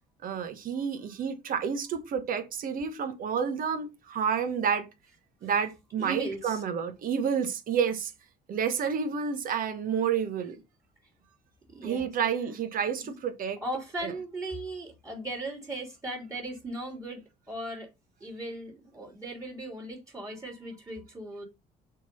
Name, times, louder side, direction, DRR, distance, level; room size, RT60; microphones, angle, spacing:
voice 1, 0.2-4.9 5.4-8.1 8.5-10.6 11.8-13.6 14.0-14.1, right 7 dB, 55° right, 1.4 m, -30 dB
voice 2, 6.0-6.6 11.7-12.1 13.6-17.9 18.2-21.4, right 2 dB, 20° right, 3.1 m, -37 dB
6.1 x 4.0 x 5.4 m
cardioid pair, 110°, 17 cm